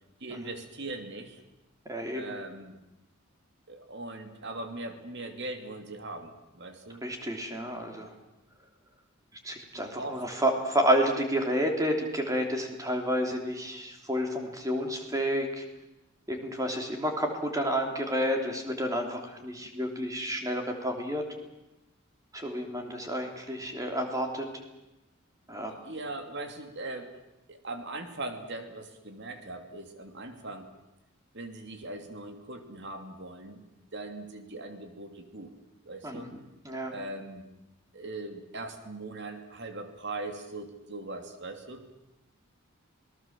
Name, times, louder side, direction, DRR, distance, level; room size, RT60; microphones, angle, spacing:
voice 1, 0.2-1.4 2.1-2.8 3.7-7.1 9.7-10.2 25.7-27.2 27.5-30.7 31.3-33.6 33.9-35.5 35.8-36.3 36.9-37.5 37.9-42.0, right 2 dB, 55° right, 6 dB, 2.8 m, -40 dB
voice 2, 1.8-2.3 7.0-8.1 9.4-15.6 16.3-21.2 22.3-24.5 25.5-25.7 36.0-36.3 36.6-36.9, equal, 15° right, 3 dB, 3.4 m, -30 dB
27.5 x 19.0 x 7.5 m, 0.97 s
head